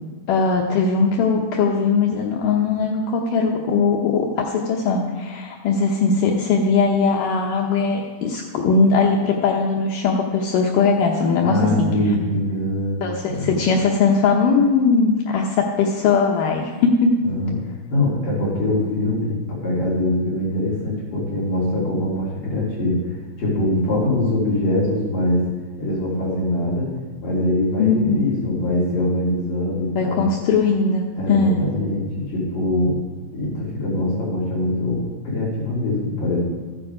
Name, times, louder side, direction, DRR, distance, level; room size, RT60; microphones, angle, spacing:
voice 1, 0.3-11.9 13.0-17.1 27.8-28.2 30.0-31.6, left 4 dB, 80° left, 0 dB, 1.9 m, -19 dB
voice 2, 11.4-13.6 17.2-23.0 23.4-25.5 25.8-26.9 27.2-30.3 31.1-32.9 33.3-36.4, left 1 dB, 50° left, -7 dB, 4.0 m, -23 dB
14.5 x 9.6 x 4.9 m, 1.4 s
omnidirectional pair, 5.1 m